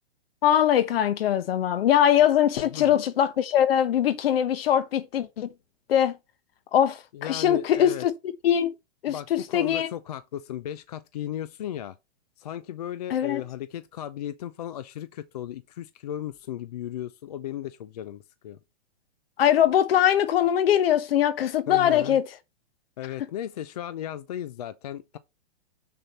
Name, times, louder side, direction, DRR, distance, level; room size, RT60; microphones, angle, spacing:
voice 1, 0.4-5.5 5.9-6.2 6.7-8.1 8.4-8.7 9.0-9.9 13.1-13.4 19.4-22.3, left 10 dB, 60° left, 1.1 m, -22 dB
voice 2, 2.7-3.0 7.1-8.1 9.1-12.0 12.4-18.6 21.7-22.2 23.0-25.2, left 11 dB, 40° left, 0.4 m, -35 dB
6.7 x 6.0 x 4.1 m
hypercardioid pair, 160°, 34 cm